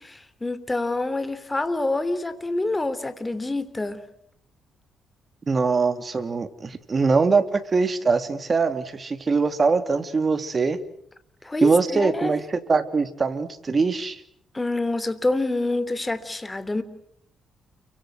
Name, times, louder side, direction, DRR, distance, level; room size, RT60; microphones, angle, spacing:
voice 1, 0.0-4.0 11.4-12.3 14.5-16.8, left 2 dB, 15° left, 13 dB, 3.1 m, -27 dB
voice 2, 5.5-10.8 11.6-14.2, right 4 dB, 35° right, 10 dB, 2.8 m, -22 dB
30.0 x 25.0 x 6.4 m, 0.70 s
cardioid pair, 90°, 0 cm